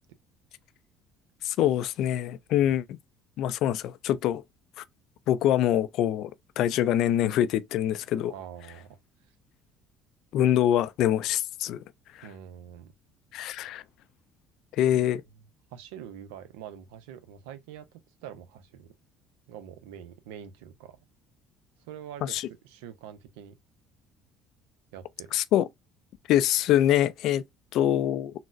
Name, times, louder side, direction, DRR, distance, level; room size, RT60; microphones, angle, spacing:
voice 1, 1.4-3.0 3.4-4.4 4.8-4.9 5.3-6.3 6.6-8.3 10.3-11.8 12.1-12.3 13.3-13.8 14.7-15.2 22.2-22.5 25.3-25.7 26.3-27.4 27.7-28.3, left 11 dB, 70° left, 0.3 m, -24 dB
voice 2, 8.3-9.0 12.2-12.9 14.9-15.0 15.7-18.9 19.5-21.0 21.9-23.6 24.9-25.3, right 9 dB, 90° right, 0.5 m, -45 dB
3.9 x 2.0 x 2.4 m
supercardioid pair, 90°, 0 cm